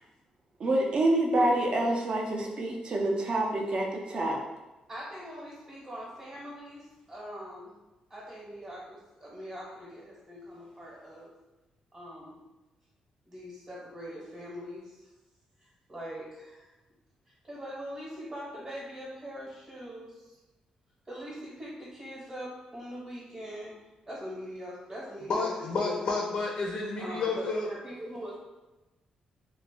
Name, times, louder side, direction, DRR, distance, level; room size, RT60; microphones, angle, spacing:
voice 1, 0.6-4.4, right 1 dB, 45° right, 0 dB, 0.5 m, -27 dB
voice 2, 4.9-6.8 7.1-7.7 8.1-11.3 11.9-12.4 13.3-14.9 15.9-16.7 17.5-20.1 21.1-23.7 24.1-26.0 27.0-28.3, equal, 20° right, -6 dB, 0.9 m, -42 dB
voice 3, 25.3-27.7, left 3 dB, 55° left, -2 dB, 0.5 m, -30 dB
2.4 x 2.0 x 3.6 m, 1.1 s
cardioid pair, 110°, 2 cm